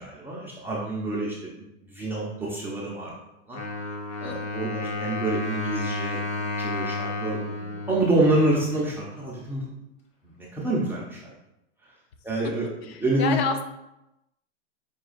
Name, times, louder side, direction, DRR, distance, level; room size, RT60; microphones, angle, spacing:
voice 1, 0.0-1.5 1.9-3.1 3.5-3.6 4.2-6.2 6.6-9.7 10.4-11.2 12.2-13.4, right 2 dB, 5° right, -6 dB, 0.3 m, -27 dB
Wind instrument woodwind instrument, 3.5-9.2, left 3 dB, 40° left, 1.0 m, -32 dB
voice 2, 4.2-4.7 12.8-13.6, left 6 dB, 55° left, 6 dB, 0.6 m, -30 dB
4.9 x 2.3 x 3.8 m, 0.90 s
hypercardioid pair, 110°, 37 cm